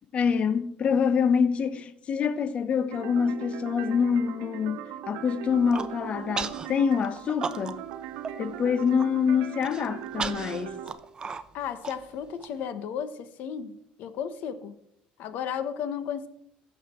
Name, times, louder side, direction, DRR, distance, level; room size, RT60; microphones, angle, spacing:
voice 1, 0.1-7.8 8.4-10.8, left 6 dB, 35° left, 0.8 m, -26 dB
sound 1, 2.9-10.9, right 10 dB, 85° right, 1.0 m, -39 dB
Human voice, 5.5-5.9 6.4-6.7 7.0-7.9 8.2-8.3 8.7-9.1 9.6-12.5, right 5 dB, 25° right, 0.6 m, -35 dB
voice 2, 11.5-13.7 14.0-14.7 15.2-16.3, left 8 dB, 65° left, 1.1 m, -33 dB
15.5 x 6.8 x 4.4 m
cardioid pair, 125°, 3 cm